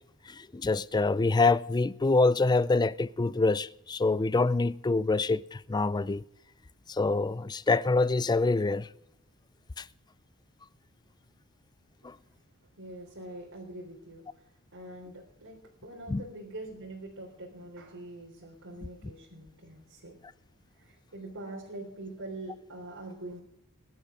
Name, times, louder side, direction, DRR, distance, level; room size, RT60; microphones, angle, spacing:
voice 1, 0.3-6.2 6.9-8.9 9.8-9.9 12.0-12.2 16.1-16.2 19.0-19.1, left 3 dB, 20° left, 0.4 m, -26 dB
voice 2, 12.8-15.6 15.8-20.1 20.8-23.4, right 2 dB, 65° right, 3.5 m, -44 dB
22.0 x 11.5 x 3.7 m
head